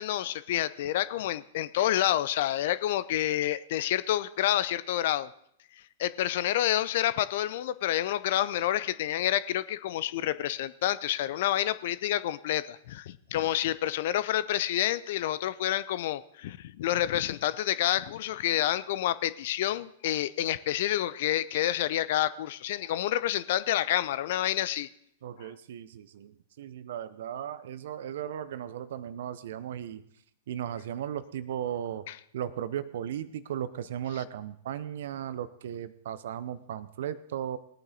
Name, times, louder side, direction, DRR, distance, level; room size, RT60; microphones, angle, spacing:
voice 1, 0.0-5.3 6.0-24.9 25.4-25.5 32.1-32.2, left 13 dB, 60° left, 16 dB, 0.6 m, -28 dB
voice 2, 25.2-30.0 30.5-32.1 32.3-37.6, right 10 dB, 65° right, 15 dB, 0.8 m, -36 dB
19.5 x 9.0 x 3.9 m, 0.70 s
figure-of-eight pair, 105°, 0 cm